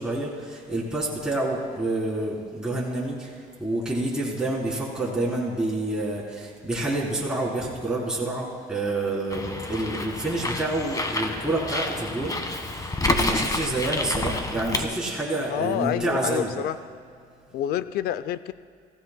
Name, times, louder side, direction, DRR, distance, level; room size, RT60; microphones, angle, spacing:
voice 1, 0.0-3.3 3.6-16.6, right 2 dB, 5° right, -6 dB, 3.5 m, -28 dB
Bird, 9.3-14.8, left 2 dB, 25° left, 1.5 m, -28 dB
voice 2, 15.5-16.8 17.5-18.5, left 11 dB, 85° left, 15 dB, 0.5 m, -28 dB
24.0 x 16.0 x 2.2 m, 2.3 s
cardioid pair, 85°, 16 cm